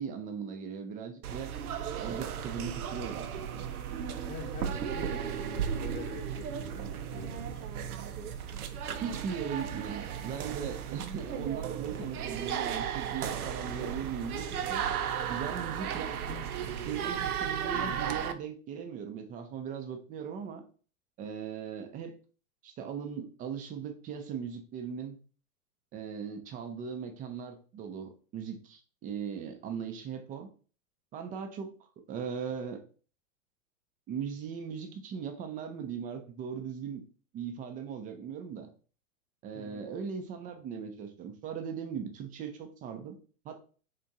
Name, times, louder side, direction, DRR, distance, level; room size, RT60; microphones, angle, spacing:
voice 1, 0.0-1.5 2.0-3.6 9.0-14.8 15.3-16.2 16.9-20.6 21.2-22.2 22.6-25.2 25.9-30.5 31.1-31.7 32.1-32.8 34.1-37.0 37.3-38.7 39.4-43.2 43.4-43.6, right 7 dB, 20° right, 7 dB, 0.5 m, -38 dB
sound 1, 1.2-18.3, right 8 dB, 85° right, 0.6 m, -35 dB
voice 2, 4.2-7.7 12.0-12.2 16.3-16.7 39.5-39.8, left 4 dB, 15° left, 2 dB, 0.9 m, -45 dB
3.6 x 3.6 x 2.7 m, 0.39 s
hypercardioid pair, 120°, 43 cm